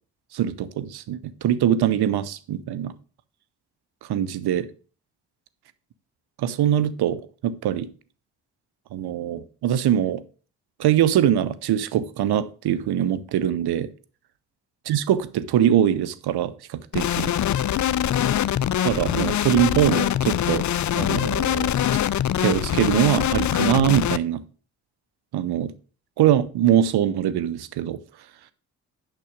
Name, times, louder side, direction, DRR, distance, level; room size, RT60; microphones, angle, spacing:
voice 1, 0.3-2.9 4.0-4.7 6.4-7.9 8.9-10.2 10.8-13.9 14.9-17.3 18.8-20.7 20.9-22.0 22.4-24.4 25.3-25.7 26.2-28.0, right 10 dB, 70° right, 0.9 m, -23 dB
sound 1, 16.9-24.2, left 11 dB, 45° left, 0.5 m, -23 dB
9.0 x 6.0 x 5.1 m
hypercardioid pair, 45°, 41 cm